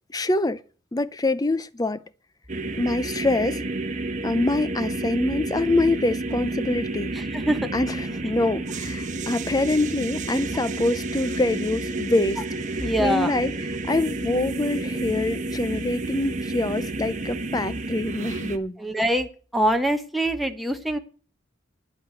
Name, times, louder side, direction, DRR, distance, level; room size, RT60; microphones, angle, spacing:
voice 1, 0.1-0.6 0.9-2.0 2.8-3.6 4.2-7.1 7.7-12.4 12.7-13.5 13.9-18.8, left 2 dB, 20° left, 0.5 m, -25 dB
sound 1, 2.5-18.6, right 2 dB, 40° right, 1.1 m, -30 dB
voice 2, 7.1-7.7 12.8-13.3 18.8-21.0, equal, ahead, 1.1 m, -24 dB
10.0 x 8.5 x 8.2 m
head